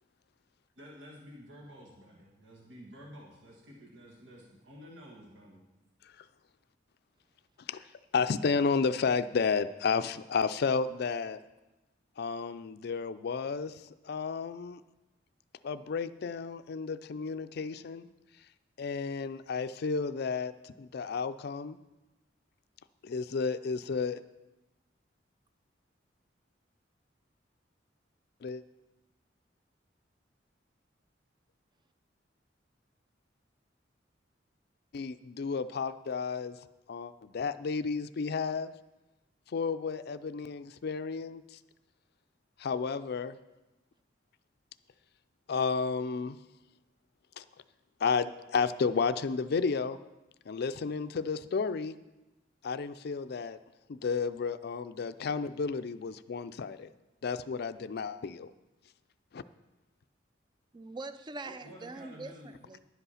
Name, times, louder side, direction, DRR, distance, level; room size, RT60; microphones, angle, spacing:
voice 1, 0.8-5.7 61.4-62.6, equal, 80° right, -3 dB, 1.7 m, -51 dB
voice 2, 8.1-11.4 12.2-13.8 14.0-14.8 15.6-18.1 18.8-21.8 23.0-24.2 28.4-28.6 34.9-36.6 36.9-38.7 39.5-41.6 42.6-43.4 45.5-46.4 47.4-47.5 48.0-50.0 50.5-52.0 52.6-53.6 53.9-56.9 57.2-58.5 59.3-59.4, left 5 dB, 60° left, 12 dB, 0.4 m, -32 dB
voice 3, 60.7-62.8, right 3 dB, 25° right, 11 dB, 0.5 m, -43 dB
11.0 x 8.2 x 5.6 m, 1.0 s
head